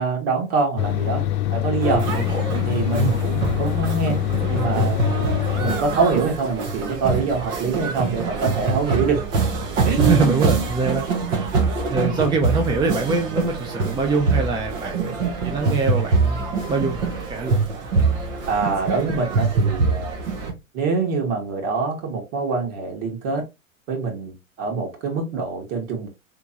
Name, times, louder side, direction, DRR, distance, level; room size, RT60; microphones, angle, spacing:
voice 1, 0.0-2.0 2.7-4.2 4.5-5.0 5.6-9.2 9.9-10.4 18.5-20.2 20.7-23.4 23.9-26.1, right 4 dB, 50° right, 2.1 m, -24 dB
sound 1, 0.8-5.7, left 12 dB, 55° left, 0.7 m, -24 dB
sound 2, 1.8-20.5, right 4 dB, 65° right, 1.5 m, -24 dB
voice 2, 2.1-2.4 2.9-3.2 8.0-8.1 10.0-11.0 11.9-15.2 15.4-17.6, right 4 dB, 10° right, 0.5 m, -24 dB
3.7 x 3.5 x 2.8 m
hypercardioid pair, 105°, 40 cm